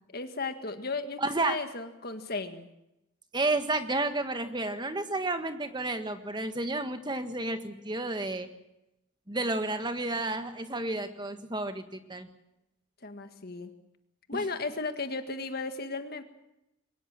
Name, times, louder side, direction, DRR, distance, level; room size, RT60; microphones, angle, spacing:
voice 1, 0.1-2.7 13.0-13.7 14.3-16.2, left 3 dB, 50° left, 8 dB, 1.8 m, -35 dB
voice 2, 1.2-1.6 3.3-8.5 9.3-12.3 14.3-14.4, right 2 dB, 20° right, 8 dB, 1.6 m, -31 dB
23.0 x 19.5 x 7.5 m, 0.88 s
head